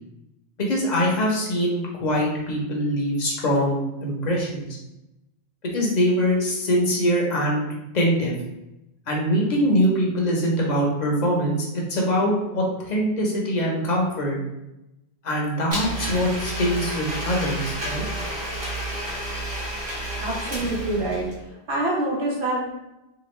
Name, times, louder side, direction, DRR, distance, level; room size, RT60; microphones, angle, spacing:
voice 1, 0.6-4.6 5.7-7.6 7.9-8.4 9.1-14.4 15.2-18.0, equal, 45° left, -2 dB, 0.7 m, -23 dB
Domestic sounds home sounds, 15.7-21.4, right 1 dB, 40° right, 1.0 m, -30 dB
voice 2, 20.2-21.3 21.7-22.7, right 1 dB, 85° right, -4 dB, 1.2 m, -26 dB
2.9 x 2.3 x 3.1 m, 0.94 s
omnidirectional pair, 1.1 m